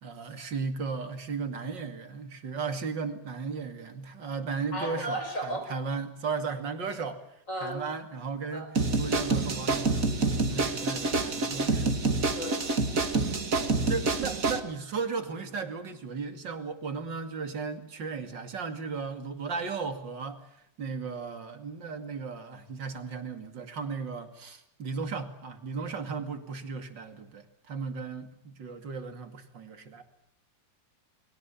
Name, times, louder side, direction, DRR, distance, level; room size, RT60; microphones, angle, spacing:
voice 1, 0.0-7.2 7.6-12.0 12.9-13.0 13.9-20.4 20.8-30.0, right 5 dB, 85° right, 8 dB, 3.1 m, -35 dB
voice 2, 4.7-5.7 7.5-7.8 8.5-8.7 12.3-12.7, right 1 dB, 45° left, 5 dB, 6.4 m, -34 dB
sound 1, 8.7-14.6, right 3 dB, 50° right, 2.4 m, -27 dB
30.0 x 22.0 x 7.2 m, 0.71 s
omnidirectional pair, 1.9 m